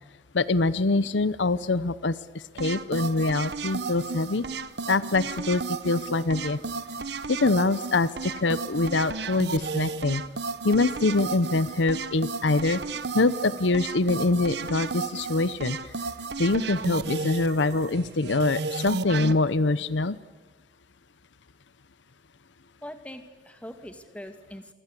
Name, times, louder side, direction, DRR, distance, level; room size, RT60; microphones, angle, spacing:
voice 1, 0.3-2.1 2.6-4.4 4.9-6.6 7.4-10.2 10.6-12.8 13.1-15.8 16.4-20.2, left 3 dB, 75° left, 17 dB, 0.8 m, -24 dB
sound 1, 2.6-19.3, right 4 dB, 60° right, 1.1 m, -34 dB
voice 2, 22.8-24.7, equal, 5° left, 7 dB, 2.2 m, -42 dB
27.0 x 25.0 x 8.4 m, 1.3 s
head